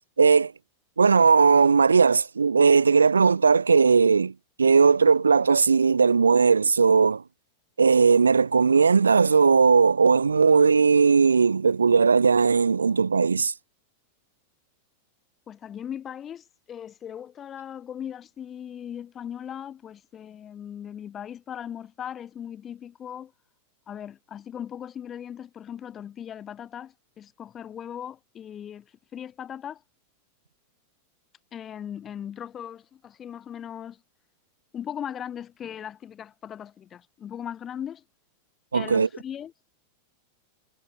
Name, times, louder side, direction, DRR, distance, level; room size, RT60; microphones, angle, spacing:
voice 1, 0.2-0.5 1.0-4.3 4.6-7.2 7.8-13.5 38.7-39.1, right 5 dB, 75° right, 0.3 m, -18 dB
voice 2, 15.5-23.3 23.9-28.9 29.1-29.8 31.5-34.0 34.7-38.0 38.7-39.5, left 9 dB, 25° left, 1.4 m, -38 dB
figure-of-eight pair, 90°, 0 cm